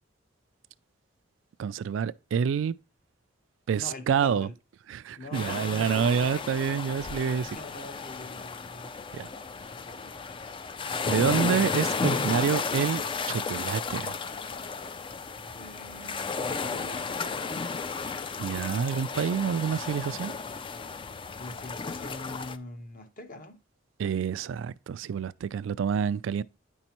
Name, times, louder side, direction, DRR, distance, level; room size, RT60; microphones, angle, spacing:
voice 1, 1.6-2.7 3.7-4.5 4.9-7.5 9.1-9.3 11.1-14.2 18.4-20.4 24.0-26.4, right 7 dB, 85° right, 0.3 m, -28 dB
voice 2, 3.8-4.5 5.1-6.4 7.5-8.9 9.7-10.4 15.3-17.6 21.3-23.6, left 2 dB, 45° left, 1.0 m, -44 dB
sound 1, 5.3-22.6, left 4 dB, 25° left, 0.4 m, -33 dB
9.1 x 5.4 x 3.0 m
head